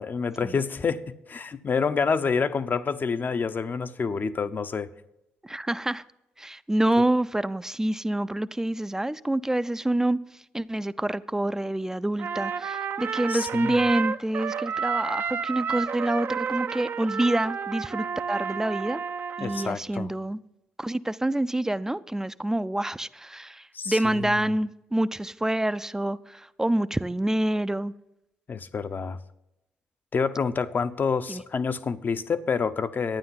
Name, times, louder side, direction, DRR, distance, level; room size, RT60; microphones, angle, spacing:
voice 1, 0.0-4.9 13.3-13.8 19.4-20.1 23.7-24.3 28.5-29.2 30.1-33.2, left 5 dB, 45° left, 0.7 m, -28 dB
voice 2, 5.4-6.0 6.4-19.0 19.4-20.4 20.8-27.9 31.3-31.4, right 1 dB, 10° right, 0.5 m, -27 dB
Trumpet, 12.2-19.7, right 6 dB, 55° right, 0.6 m, -31 dB
12.0 x 9.3 x 5.7 m
supercardioid pair, 50°, 4 cm